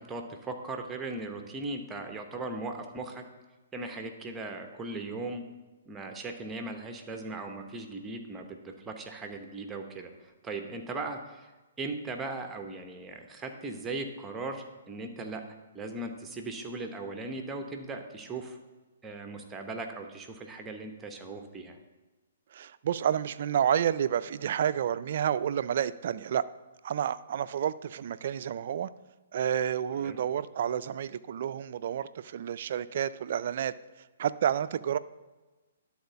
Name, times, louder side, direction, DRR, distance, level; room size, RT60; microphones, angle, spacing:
voice 1, 0.0-3.2 3.7-5.4 5.9-11.5 11.8-18.6 19.0-21.8 29.9-30.2, right 2 dB, 15° right, 4 dB, 1.1 m, -38 dB
voice 2, 22.5-26.5 26.8-28.9 29.3-33.7 34.2-35.0, right 9 dB, 55° right, 14 dB, 0.4 m, -30 dB
11.5 x 4.3 x 6.9 m, 1.2 s
hypercardioid pair, 135°, 0 cm